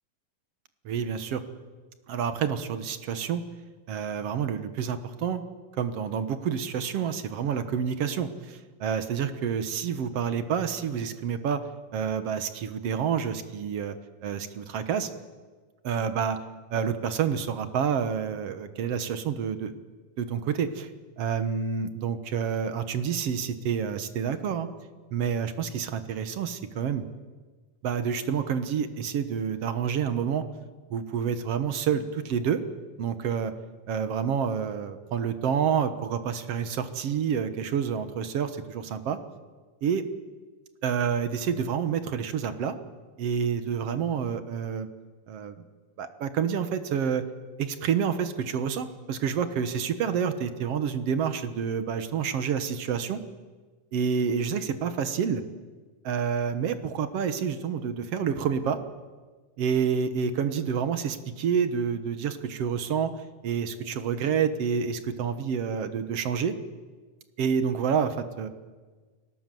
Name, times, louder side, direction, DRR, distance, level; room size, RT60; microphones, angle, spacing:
voice 1, 0.9-1.4 2.1-3.4 3.9-5.5 5.8-11.6 11.9-14.0 14.2-15.1 15.8-16.4 16.7-19.7 20.2-20.9 21.2-24.7 25.1-27.0 27.8-30.4 30.9-32.6 33.0-33.5 33.9-39.2 39.8-40.0 40.8-42.8 43.2-44.9 45.3-45.6 46.0-47.2 47.6-53.2 53.9-55.4 56.0-58.8 59.6-63.1 63.4-66.6 67.4-68.5, right 7 dB, 55° right, 10 dB, 1.9 m, -28 dB
30.0 x 19.0 x 7.8 m, 1.4 s
omnidirectional pair, 4.0 m